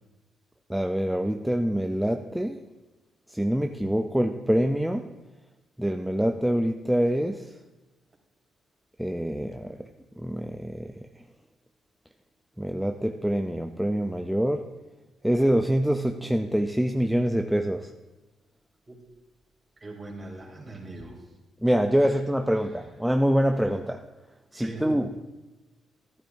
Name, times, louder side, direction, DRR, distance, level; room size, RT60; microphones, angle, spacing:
voice 1, 0.7-2.6 3.3-5.0 5.8-7.5 9.0-9.8 10.2-10.9 12.6-14.7 15.2-17.9 21.6-24.1 24.5-25.1, equal, 5° right, 5 dB, 0.4 m, -25 dB
voice 2, 19.8-21.3 21.9-22.2 22.6-22.9 24.5-24.9, right 2 dB, 30° right, 0 dB, 3.0 m, -42 dB
14.0 x 11.5 x 2.6 m, 1.1 s
cardioid pair, 90°, 0 cm